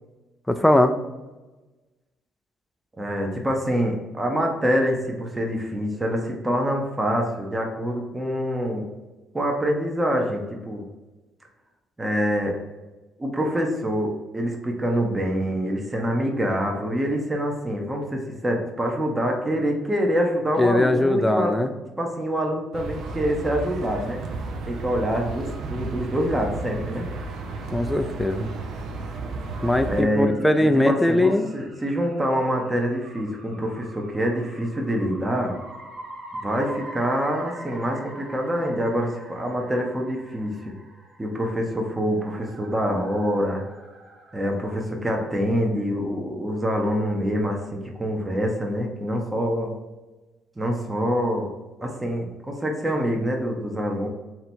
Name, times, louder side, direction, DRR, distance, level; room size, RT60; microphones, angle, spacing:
voice 1, 0.5-1.0 20.6-21.7 27.7-28.5 29.6-31.5, left 1 dB, 5° left, 8 dB, 0.4 m, -20 dB
voice 2, 3.0-8.8 9.3-10.8 12.0-12.6 13.2-21.5 22.0-24.2 24.6-27.1 29.8-35.6 36.4-40.7 41.2-43.6 44.3-49.8 50.6-51.5 51.8-54.1, equal, 15° right, 1 dB, 0.8 m, -25 dB
sound 1, 22.7-30.0, right 3 dB, 65° right, 0.5 m, -33 dB
sound 2, 28.0-44.8, right 1 dB, 45° right, 1.0 m, -44 dB
3.3 x 2.9 x 4.2 m, 1.1 s
supercardioid pair, 80°, 0 cm